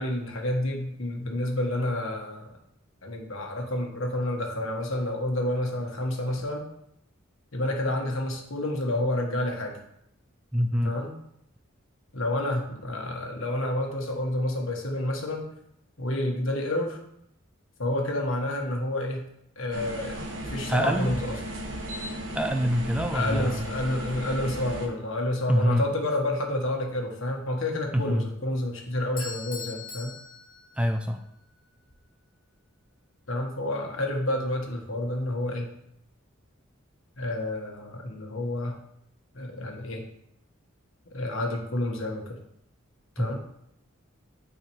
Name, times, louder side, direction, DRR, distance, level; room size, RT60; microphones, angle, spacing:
voice 1, 0.0-2.5 3.0-6.7 7.5-9.8 10.8-11.1 12.1-15.5 16.0-17.0 17.8-19.2 19.6-20.2 20.4-21.3 23.1-30.1 33.3-35.7 37.2-38.8 39.3-40.0 41.1-42.4 43.2-43.4, left 1 dB, 75° left, 1 dB, 1.4 m, -29 dB
voice 2, 10.5-10.9 20.7-21.1 22.3-23.6 25.5-25.9 27.9-28.2 30.8-31.2 43.2-43.4, equal, 5° right, 6 dB, 0.4 m, -25 dB
sound 1, 19.7-24.8, equal, 70° right, 1.3 m, -35 dB
Bell / Doorbell, 29.2-31.3, left 5 dB, 45° left, 1.2 m, -41 dB
8.8 x 4.8 x 3.2 m, 0.75 s
head